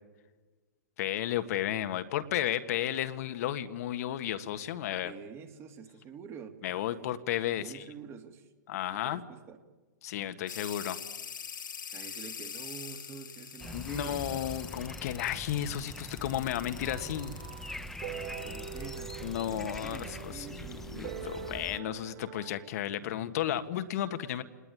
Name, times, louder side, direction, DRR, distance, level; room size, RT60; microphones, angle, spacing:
voice 1, 1.0-5.1 6.6-7.8 8.7-9.2 10.0-11.0 13.7-17.3 19.2-24.4, left 11 dB, 55° left, 9 dB, 1.6 m, -33 dB
voice 2, 5.0-6.6 7.6-8.5 8.9-9.6 11.8-14.2 18.1-21.2, right 7 dB, 25° right, 7 dB, 2.4 m, -47 dB
sound 1, 10.5-20.3, left 7 dB, 85° left, 2.1 m, -44 dB
sound 2, 13.6-21.8, left 1 dB, 5° left, 0.9 m, -43 dB
sound 3, 16.8-22.6, right 8 dB, 40° right, 3.8 m, -44 dB
27.5 x 20.0 x 9.8 m, 1.3 s
hypercardioid pair, 130°, 10 cm